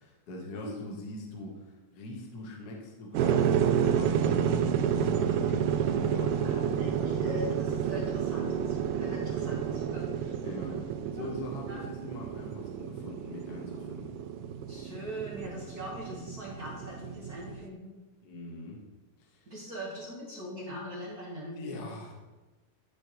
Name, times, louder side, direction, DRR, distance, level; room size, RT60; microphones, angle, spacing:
voice 1, 0.0-7.2 10.4-10.8 11.1-14.2 18.2-18.8 19.2-19.7 21.5-22.2, left 1 dB, 60° left, -1 dB, 1.0 m, -43 dB
sound 1, 3.1-17.7, right 8 dB, 80° right, 1.8 m, -30 dB
voice 2, 6.4-10.4 10.7-10.8 11.2-11.8 14.7-18.0 19.5-21.9, equal, 45° right, -5 dB, 1.4 m, -41 dB
12.5 x 5.1 x 3.0 m, 1.2 s
omnidirectional pair, 3.5 m